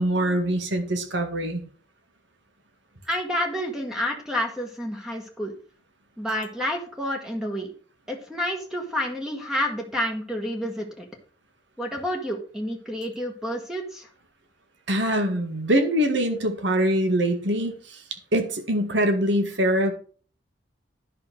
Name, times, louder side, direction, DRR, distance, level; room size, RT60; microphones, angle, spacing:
voice 1, 0.0-1.6 14.9-18.0 18.3-19.9, equal, 65° right, 7 dB, 1.9 m, -23 dB
voice 2, 3.0-5.5 6.2-7.7 8.1-11.0 11.8-14.1, equal, 5° right, 1 dB, 1.3 m, -29 dB
10.5 x 5.7 x 6.2 m, 0.42 s
head